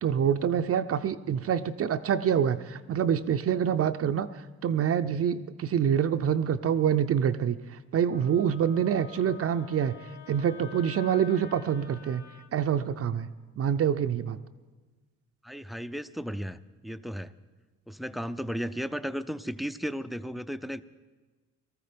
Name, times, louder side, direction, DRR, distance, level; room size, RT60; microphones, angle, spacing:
voice 1, 0.0-4.3 4.6-7.6 7.9-9.9 10.3-12.2 12.5-13.3 13.6-14.4, right 8 dB, 50° right, 9 dB, 0.6 m, -26 dB
Wind instrument woodwind instrument, 8.1-12.5, left 7 dB, 65° left, 1.4 m, -48 dB
voice 2, 15.4-17.3 17.9-20.8, equal, ahead, 14 dB, 0.5 m, -35 dB
19.0 x 13.5 x 5.1 m, 1.3 s
cardioid pair, 90°, 30 cm